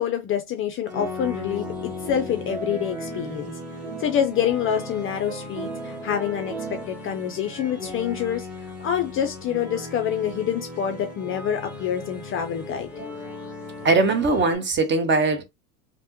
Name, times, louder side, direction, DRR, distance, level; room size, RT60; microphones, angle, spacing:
voice 1, 0.0-3.5 4.0-8.5 8.8-12.9, left 9 dB, 30° left, 0.4 m, -26 dB
sound 1, 0.8-14.5, left 3 dB, ahead, 1.2 m, -37 dB
sound 2, 1.5-6.8, right 5 dB, 80° right, 1.1 m, -38 dB
voice 2, 13.8-15.4, right 3 dB, 25° right, 0.8 m, -20 dB
3.3 x 2.1 x 2.8 m
hypercardioid pair, 95°, 43 cm